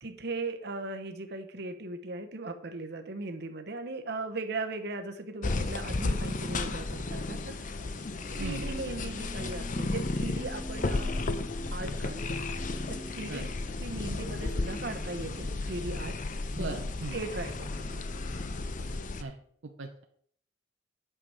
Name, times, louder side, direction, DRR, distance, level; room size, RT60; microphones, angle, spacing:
voice 1, 0.0-7.7 8.3-11.1 11.7-12.4 12.9-13.5 13.8-16.1 16.6-16.8 17.1-18.0, right 2 dB, 60° right, 6 dB, 1.0 m, -38 dB
Organ / Church bell, 5.3-19.4, equal, ahead, 1.5 m, -48 dB
sound 1, 5.4-19.2, left 2 dB, 45° left, 0.6 m, -33 dB
voice 2, 16.5-17.1 19.2-19.4 19.8-20.0, right 3 dB, 80° right, 4 dB, 0.7 m, -38 dB
9.0 x 5.9 x 4.8 m, 0.63 s
head